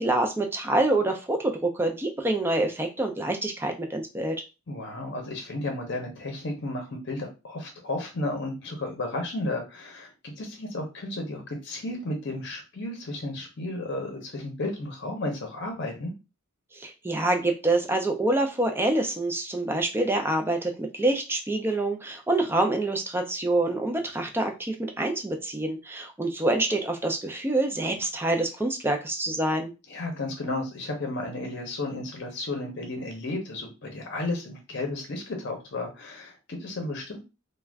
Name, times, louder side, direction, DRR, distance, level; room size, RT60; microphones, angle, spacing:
voice 1, 0.0-4.4 16.7-29.7, right 2 dB, 10° right, 4 dB, 0.4 m, -26 dB
voice 2, 4.7-16.1 29.9-37.2, left 2 dB, 55° left, 3 dB, 0.7 m, -33 dB
2.4 x 2.2 x 3.3 m, 0.28 s
head